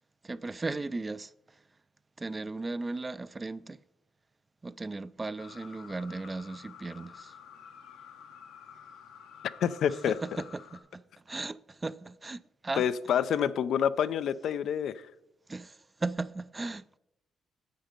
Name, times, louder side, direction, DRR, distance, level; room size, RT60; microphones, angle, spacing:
voice 1, 0.2-1.6 2.2-3.8 4.6-7.3 10.1-12.9 15.5-17.0, right 3 dB, 20° right, 0.3 m, -37 dB
sound 1, 5.4-10.8, left 7 dB, 85° left, 1.1 m, -51 dB
voice 2, 9.6-10.1 12.8-15.1, left 8 dB, 70° left, 0.4 m, -27 dB
9.2 x 7.8 x 5.1 m
cardioid pair, 90°, 0 cm